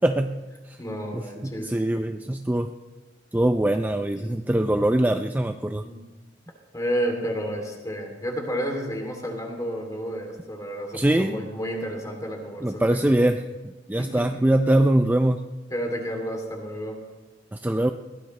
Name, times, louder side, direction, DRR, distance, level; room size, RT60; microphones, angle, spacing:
voice 1, 0.0-0.4 0.7-0.8 1.1-2.7 3.3-5.8 10.9-11.4 12.6-15.4 17.5-17.9, right 1 dB, 10° right, 6 dB, 0.4 m, -23 dB
voice 2, 0.8-1.7 4.1-4.4 5.8-6.0 6.7-13.1 14.0-14.3 15.7-17.0, equal, 20° left, 2 dB, 2.9 m, -31 dB
21.5 x 16.5 x 3.2 m, 1.2 s
head